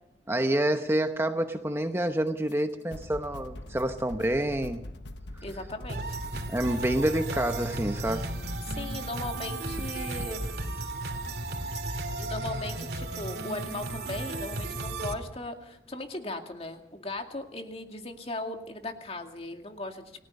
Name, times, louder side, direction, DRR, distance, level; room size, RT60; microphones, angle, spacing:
voice 1, 0.3-4.8 6.5-8.3, right 1 dB, 15° right, 6 dB, 0.9 m, -28 dB
sound 1, 2.5-2.6 2.9-10.7, left 1 dB, 85° left, 1.0 m, -43 dB
voice 2, 5.4-6.2 8.6-10.5 11.9-20.1, left 2 dB, 35° left, 4 dB, 2.3 m, -38 dB
sound 2, 5.9-15.1, right 2 dB, 60° right, 2.8 m, -34 dB
29.0 x 18.0 x 5.4 m, 0.81 s
head